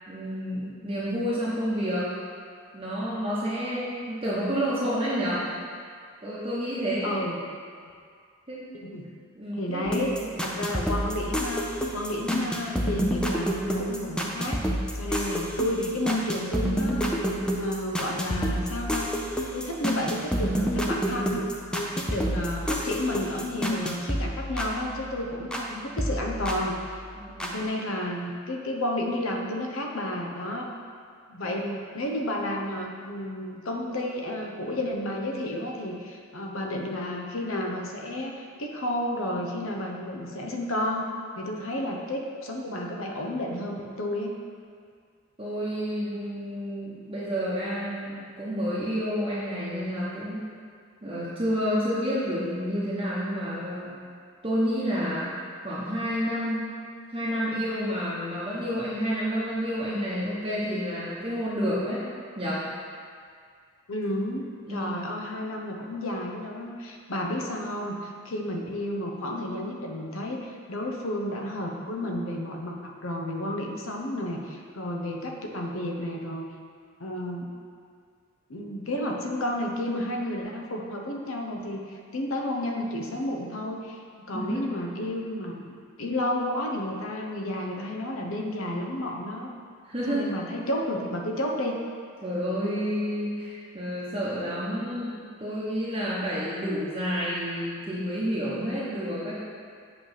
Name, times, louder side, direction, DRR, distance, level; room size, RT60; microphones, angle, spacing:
voice 1, 0.1-2.1 2.7-5.4 6.2-7.1 8.5-8.7 9.3-10.3 27.2-27.6 31.5-31.7 45.4-50.4 51.0-53.9 54.4-55.3 55.6-56.6 57.1-62.0 62.4-62.6 64.7-64.9 84.3-84.7 89.8-90.3 92.2-99.3, equal, 25° right, -9 dB, 0.9 m, -29 dB
voice 2, 7.0-7.4 8.8-9.1 9.5-14.6 14.9-17.2 17.6-19.1 19.5-21.4 21.7-27.0 27.4-30.7 31.3-41.1 41.4-44.3 63.9-76.5 77.0-77.5 78.5-84.0 84.3-85.7 86.0-89.5 90.1-91.8, left 1 dB, 80° left, 1 dB, 0.8 m, -31 dB
sound 1, 9.9-25.7 26.0-27.5, equal, 5° left, 0.5 m, -29 dB
7.8 x 3.3 x 5.7 m, 2.2 s
head